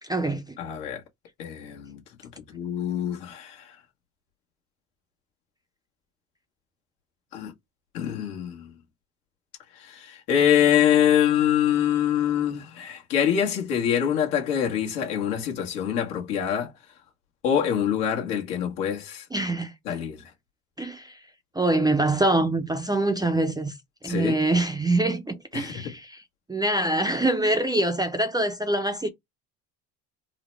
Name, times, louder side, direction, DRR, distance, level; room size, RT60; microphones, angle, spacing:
voice 1, 0.0-0.6 19.3-19.7 20.8-21.2 21.5-23.7 24.0-26.2 26.5-29.1, right 2 dB, 10° right, 0.4 m, -24 dB
voice 2, 0.6-1.0 1.4-2.0 2.5-3.7 7.3-7.5 7.9-8.7 9.7-16.7 17.4-19.2 19.9-20.2 24.0-24.4 25.5-25.9, left 9 dB, 80° left, 1.3 m, -25 dB
3.9 x 2.1 x 3.2 m
supercardioid pair, 85°, 45 cm